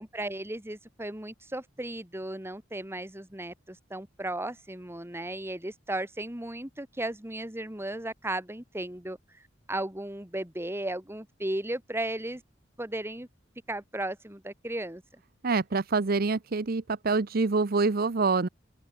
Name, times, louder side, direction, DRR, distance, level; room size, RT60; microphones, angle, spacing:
voice 1, 0.0-12.4 12.8-13.3 13.7-15.2, right 1 dB, 15° right, 2.3 m, -35 dB
voice 2, 15.4-18.5, right 4 dB, 50° right, 0.7 m, -26 dB
open air
head